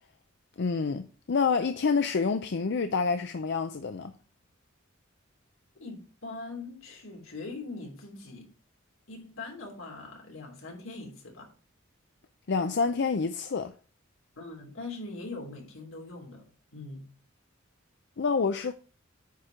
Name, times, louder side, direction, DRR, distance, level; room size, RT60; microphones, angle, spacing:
voice 1, 0.6-4.1 12.5-13.7 18.2-18.7, left 5 dB, 60° left, 0.5 m, -27 dB
voice 2, 5.8-8.5 9.1-11.5 14.4-16.4 16.7-17.1, left 3 dB, 80° left, 3.1 m, -41 dB
9.4 x 4.4 x 5.0 m
head